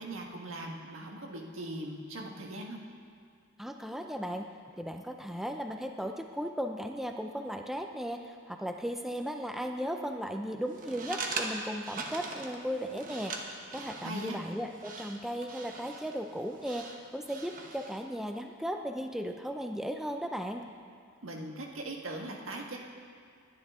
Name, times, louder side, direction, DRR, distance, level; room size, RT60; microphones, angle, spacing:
voice 1, 0.0-2.8 14.0-14.4 21.2-22.8, right 1 dB, 80° right, 0 dB, 1.6 m, -40 dB
voice 2, 3.6-4.5 4.8-20.6, equal, ahead, 4 dB, 0.5 m, -36 dB
sound 1, 10.7-18.0, right 3 dB, 40° right, 1.1 m, -41 dB
21.0 x 10.5 x 3.7 m, 2.2 s
head